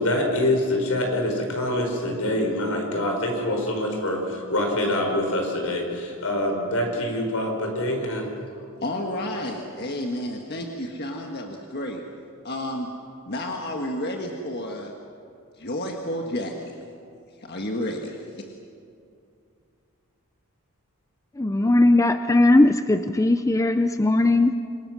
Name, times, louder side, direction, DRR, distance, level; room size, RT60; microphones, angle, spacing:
voice 1, 0.0-8.3, left 1 dB, 80° left, 2 dB, 5.2 m, -25 dB
voice 2, 8.5-12.0 12.4-13.0 13.3-14.9 15.6-16.8 17.4-18.5, left 1 dB, 50° left, 2 dB, 1.6 m, -31 dB
voice 3, 21.4-24.5, left 2 dB, 15° left, 9 dB, 0.4 m, -19 dB
27.0 x 22.5 x 6.3 m, 2.5 s
head